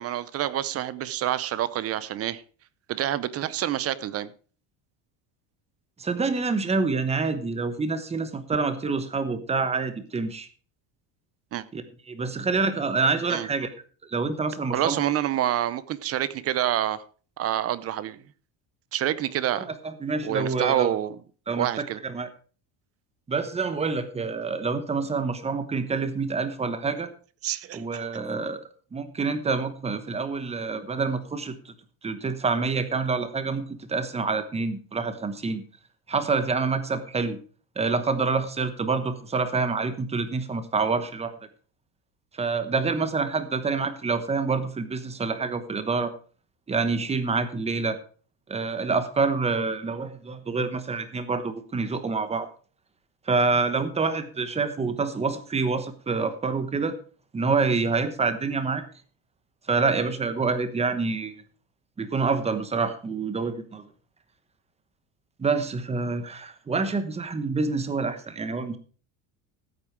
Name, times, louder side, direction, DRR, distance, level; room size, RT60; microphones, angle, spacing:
voice 1, 0.0-2.4 2.9-4.3 11.5-11.6 13.3-13.5 14.7-17.0 17.4-18.2 18.9-19.7 20.2-21.2 21.6-22.0 27.4-28.0, right 12 dB, 30° right, 18 dB, 0.6 m, -27 dB
voice 2, 6.0-10.5 11.7-13.7 14.1-15.0 19.5-19.7 20.0-20.9 21.5-22.3 23.3-27.1 27.7-28.6 28.9-31.7 32.0-35.6 36.1-37.4 37.8-41.3 42.4-46.1 46.7-48.0 48.5-52.5 53.3-56.9 57.3-58.8 59.7-61.3 62.0-63.9 65.4-68.8, right 4 dB, 15° right, 11 dB, 1.0 m, -27 dB
13.5 x 8.7 x 4.5 m, 0.39 s
cardioid pair, 165°, 49 cm